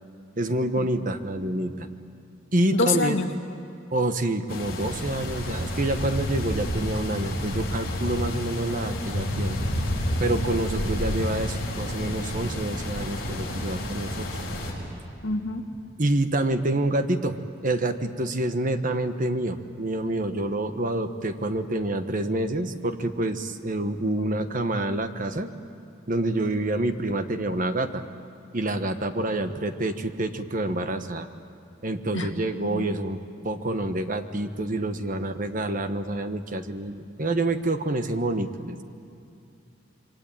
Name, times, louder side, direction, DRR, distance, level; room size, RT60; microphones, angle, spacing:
voice 1, 0.4-1.9 2.5-3.2 3.9-9.6 10.2-14.4 16.0-25.5 26.1-28.0 28.5-31.3 31.8-38.8, right 1 dB, 40° right, 8 dB, 1.3 m, -27 dB
voice 2, 2.7-3.3 15.2-15.6 32.1-32.3 32.6-32.9, left 3 dB, 70° left, 2 dB, 2.2 m, -26 dB
sound 1, 4.5-14.7, left 1 dB, 50° left, 7.0 m, -30 dB
27.0 x 23.0 x 9.1 m, 2.6 s
head